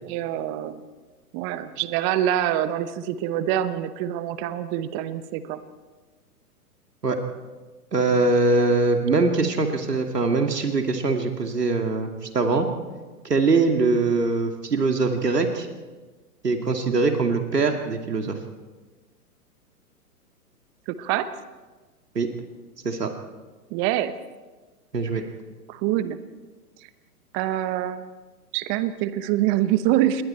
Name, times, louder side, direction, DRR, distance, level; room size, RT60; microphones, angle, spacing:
voice 1, 0.0-0.8 1.3-5.6 20.9-21.3 23.7-24.1 25.7-26.2 27.3-28.0 28.5-30.2, right 12 dB, 25° right, 13 dB, 1.0 m, -25 dB
voice 2, 7.9-12.7 13.2-15.7 16.4-18.4 22.1-22.3 22.8-23.1 24.9-25.2, right 3 dB, 80° right, 5 dB, 2.4 m, -22 dB
28.0 x 22.0 x 4.4 m, 1.3 s
figure-of-eight pair, 115°, 47 cm